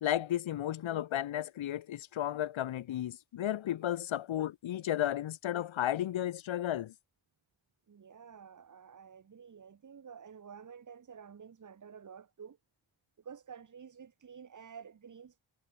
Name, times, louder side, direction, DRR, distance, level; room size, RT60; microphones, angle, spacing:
voice 1, 0.0-6.9, left 12 dB, 80° left, 0.7 m, -33 dB
voice 2, 7.9-12.6 13.2-15.4, right 7 dB, 40° right, 1.0 m, -51 dB
wide cardioid pair, 170°, 46 cm